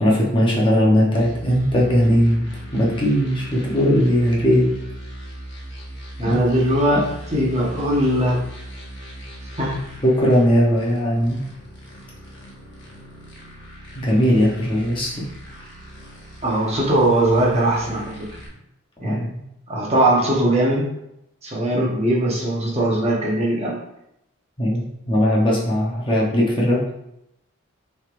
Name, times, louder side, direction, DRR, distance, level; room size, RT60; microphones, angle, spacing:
voice 1, 0.0-2.4 2.7-4.8 6.2-6.4 10.0-11.4 13.9-15.3 19.0-19.4 24.6-26.8, equal, 25° left, -4 dB, 0.8 m, -19 dB
sound 1, 1.1-18.5, right 1 dB, 55° left, 1.1 m, -39 dB
voice 2, 6.2-8.4 9.6-9.9 16.4-18.3 19.0-19.2 19.7-20.9 21.4-23.8, right 1 dB, 30° right, -4 dB, 1.0 m, -20 dB
6.2 x 3.3 x 2.6 m, 0.83 s
head